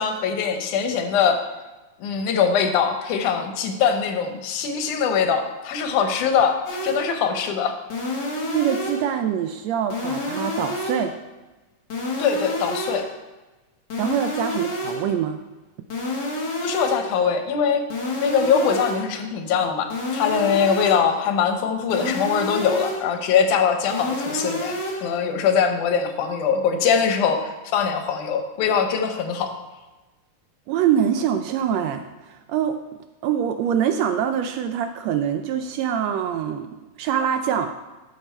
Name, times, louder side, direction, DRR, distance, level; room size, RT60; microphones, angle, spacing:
voice 1, 0.0-1.4 2.0-7.7 12.2-13.1 16.6-17.8 18.2-29.5, left 6 dB, 90° left, 6 dB, 2.5 m, -22 dB
sound 1, 6.7-7.2 7.9-9.2 9.9-11.2 11.9-13.2 13.9-15.2 15.9-17.2 17.9-19.2 19.9-21.2 21.9-23.2 23.9-25.2, left 1 dB, 45° left, 1.8 m, -29 dB
voice 2, 8.4-11.1 14.0-15.4 30.7-32.8 33.2-36.7 37.0-37.7, right 9 dB, 80° right, 8 dB, 1.6 m, -24 dB
11.5 x 6.7 x 4.4 m, 1.1 s
omnidirectional pair, 3.4 m